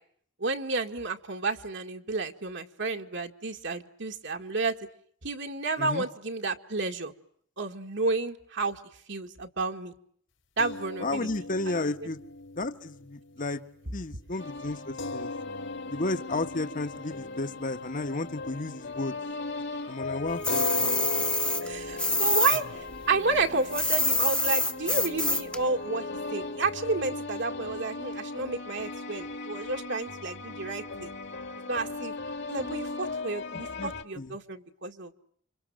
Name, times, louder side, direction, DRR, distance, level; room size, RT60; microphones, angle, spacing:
voice 1, 0.4-4.8 5.2-7.1 7.6-8.8 9.1-9.9 10.6-11.3 21.6-31.1 31.7-32.1 32.5-35.1, right 3 dB, 65° right, 4 dB, 2.0 m, -31 dB
sound 1, 10.6-19.1 19.4-19.6 20.5-27.0, left 3 dB, 80° left, 4.9 m, -40 dB
voice 2, 11.0-12.2 12.6-13.7 13.9-15.3 15.9-19.2 19.9-21.1 22.5-22.6 33.5-33.9 34.1-34.3, left 2 dB, 45° left, 9 dB, 1.4 m, -33 dB
sound 2, 14.4-34.0, left 3 dB, 60° left, 2.4 m, -38 dB
sound 3, 20.4-22.6 22.9-25.6, left 2 dB, 5° left, 1.1 m, -26 dB
29.5 x 26.0 x 7.7 m, 0.65 s
head